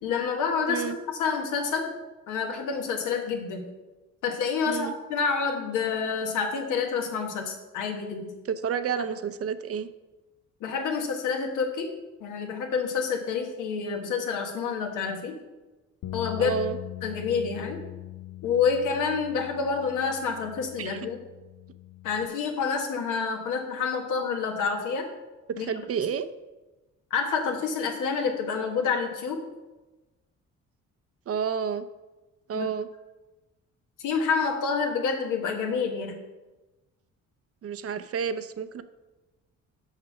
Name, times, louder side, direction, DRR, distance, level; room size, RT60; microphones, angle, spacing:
voice 1, 0.0-1.9 2.3-3.7 4.2-8.4 10.6-11.9 12.2-15.4 16.1-16.6 17.0-17.8 18.4-21.2 22.0-25.1 25.6-25.7 27.1-29.4 32.5-32.7 34.0-36.2, left 5 dB, 85° left, 3 dB, 1.4 m, -28 dB
voice 2, 8.5-9.9 16.4-16.8 20.8-21.1 25.5-26.3 31.3-31.9 32.5-32.9 37.6-38.8, right 7 dB, 50° right, 10 dB, 0.6 m, -30 dB
sound 1, 16.0-22.3, left 15 dB, 70° left, 0.6 m, -41 dB
6.5 x 5.9 x 5.8 m, 1.1 s
cardioid pair, 90°, 30 cm